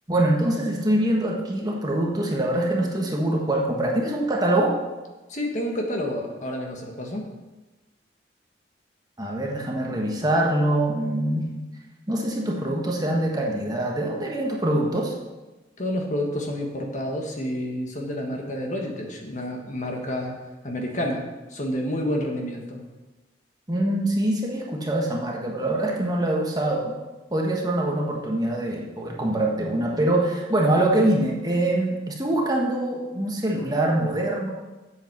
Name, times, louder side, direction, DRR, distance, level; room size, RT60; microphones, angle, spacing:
voice 1, 0.1-4.7 9.2-11.5 12.1-15.1 23.7-26.9 27.3-34.5, right 1 dB, 20° right, -1 dB, 1.4 m, -24 dB
voice 2, 5.3-7.3 15.8-20.4 20.6-21.2 21.5-22.8, left 1 dB, 40° left, 1 dB, 1.5 m, -29 dB
8.1 x 8.0 x 6.1 m, 1.1 s
head